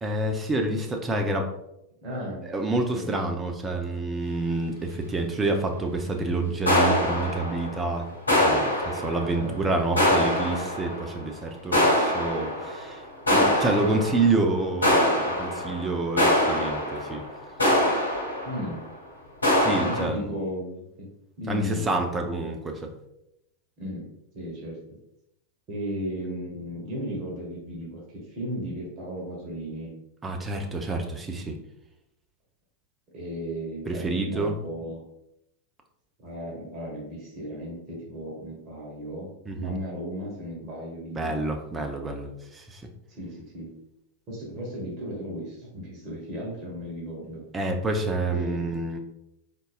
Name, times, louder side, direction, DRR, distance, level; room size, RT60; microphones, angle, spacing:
voice 1, 0.0-1.5 2.4-13.0 13.3-17.2 19.6-20.3 21.5-22.9 30.2-31.6 33.9-34.5 39.5-39.8 41.1-42.8 47.5-49.0, right 2 dB, 15° right, 4 dB, 0.6 m, -28 dB
voice 2, 2.0-3.2 9.3-9.6 18.4-18.8 19.8-21.1 21.4-21.9 23.8-24.0 24.3-24.8 25.7-29.9 33.1-35.0 36.2-39.3 39.6-41.3 43.1-43.7 44.3-47.4 48.3-48.7, equal, 35° right, -3 dB, 1.4 m, -35 dB
sound 1, 6.7-7.9 8.3-9.5 10.0-11.1 11.7-12.9 13.3-14.4 14.8-18.8 19.4-20.1, left 1 dB, 80° left, 0.9 m, -24 dB
4.0 x 3.7 x 2.4 m, 0.84 s
figure-of-eight pair, 90°, 0 cm